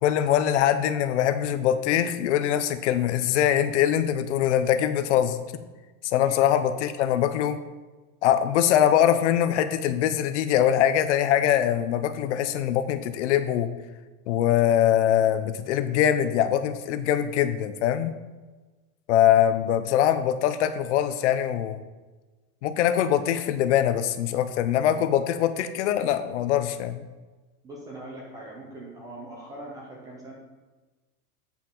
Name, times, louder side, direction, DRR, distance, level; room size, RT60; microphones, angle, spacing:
voice 1, 0.0-5.4 6.0-7.6 8.2-13.7 14.3-18.1 19.1-21.8 22.6-27.0, left 10 dB, 50° left, 11 dB, 0.7 m, -23 dB
voice 2, 27.6-30.3, right 1 dB, 10° right, -2 dB, 0.4 m, -41 dB
8.9 x 5.4 x 4.6 m, 1.3 s
supercardioid pair, 165°, 44 cm